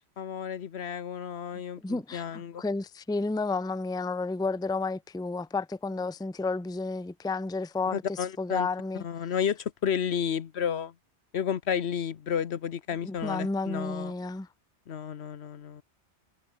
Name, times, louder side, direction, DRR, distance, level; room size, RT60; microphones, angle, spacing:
voice 1, 0.0-2.6 7.9-8.7 9.0-10.9 11.3-14.1 14.9-15.8, left 8 dB, 70° left, 1.1 m, -32 dB
voice 2, 1.8-8.0 8.4-9.0 13.0-14.5, left 3 dB, 5° left, 0.6 m, -31 dB
omnidirectional pair, 1.2 m